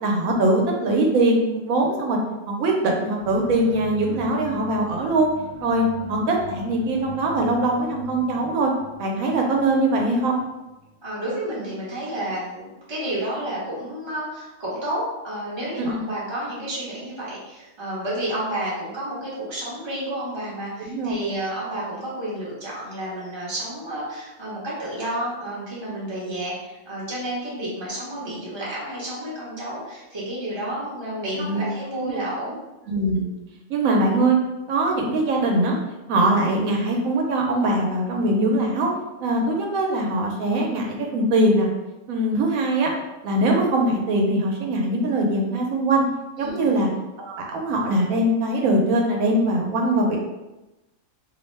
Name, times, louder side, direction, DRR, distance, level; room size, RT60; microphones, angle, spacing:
voice 1, 0.0-2.2 2.5-5.3 5.6-8.7 9.0-10.4 15.8-16.0 20.8-21.1 31.4-31.7 32.0-32.2 32.9-33.3 33.7-34.4 34.7-35.8 36.1-38.9 39.2-41.7 42.1-42.9 43.2-46.1 46.4-46.9 47.2-50.2, right 1 dB, 85° right, 0 dB, 1.0 m, -22 dB
sound 1, 3.2-11.0, left 2 dB, 90° left, 1.1 m, -40 dB
voice 2, 11.0-32.6 46.4-46.7, right 1 dB, 25° right, -7 dB, 0.8 m, -31 dB
2.7 x 2.1 x 3.1 m, 1.0 s
omnidirectional pair, 1.4 m